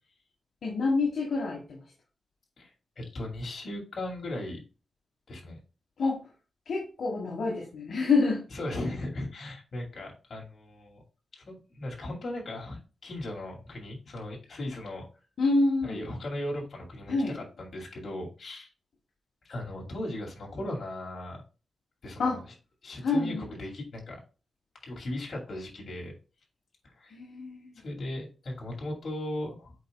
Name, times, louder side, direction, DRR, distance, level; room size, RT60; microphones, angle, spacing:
voice 1, 0.6-1.8 6.0-6.2 6.6-8.4 15.4-16.0 17.1-17.3 22.2-22.4 23.0-23.4 27.1-27.8, left 3 dB, 70° left, -2 dB, 1.7 m, -27 dB
voice 2, 2.6-4.6 5.3-5.6 8.5-11.0 11.3-15.0 15.8-18.7 19.4-21.4 22.0-22.4 22.8-24.2 24.8-26.1 26.8-27.2 27.8-29.7, left 1 dB, 55° left, -1 dB, 2.7 m, -37 dB
8.0 x 5.0 x 2.3 m, 0.34 s
wide cardioid pair, 130°, 0 cm